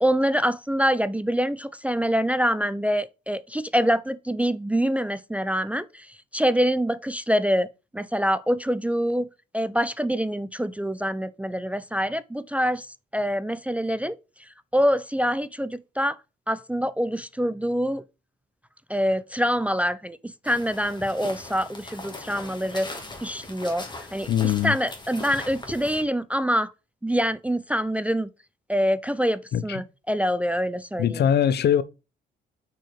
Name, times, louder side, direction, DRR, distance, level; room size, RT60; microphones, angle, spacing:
voice 1, 0.0-6.1 6.3-9.3 9.5-12.9 13.1-14.2 14.7-16.2 16.5-18.0 18.9-20.2 20.4-22.9 23.2-23.9 24.1-26.7 27.0-28.3 28.7-31.2, equal, 5° right, 0.4 m, -25 dB
sound 1, 20.4-26.0, left 2 dB, 20° left, 2.0 m, -40 dB
voice 2, 24.3-24.8 29.5-29.8 31.0-31.8, left 9 dB, 55° left, 0.6 m, -22 dB
6.1 x 4.6 x 5.0 m
cardioid pair, 90°, 20 cm